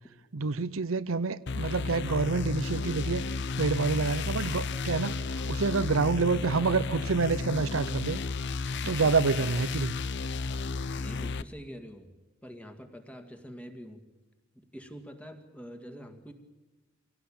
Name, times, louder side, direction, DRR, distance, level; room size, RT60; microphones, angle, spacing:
voice 1, 0.3-5.1 5.5-8.2 8.9-9.9, right 4 dB, 90° right, 14 dB, 0.7 m, -28 dB
sound 1, 1.5-11.4, left 4 dB, 60° left, 0.7 m, -33 dB
voice 2, 8.8-9.2 11.0-12.1 12.4-14.0 14.5-16.3, equal, 5° left, 5 dB, 2.0 m, -45 dB
24.5 x 17.5 x 8.8 m, 1.2 s
head